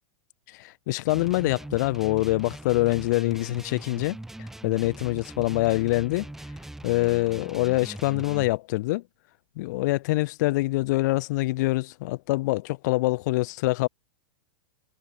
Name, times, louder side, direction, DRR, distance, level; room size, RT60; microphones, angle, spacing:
voice 1, 0.5-6.3 6.8-9.0 9.6-13.9, left 20 dB, 45° left, 0.7 m, -25 dB
sound 1, 1.1-8.5, right 1 dB, 5° right, 2.7 m, -41 dB
supercardioid pair, 165°, 13 cm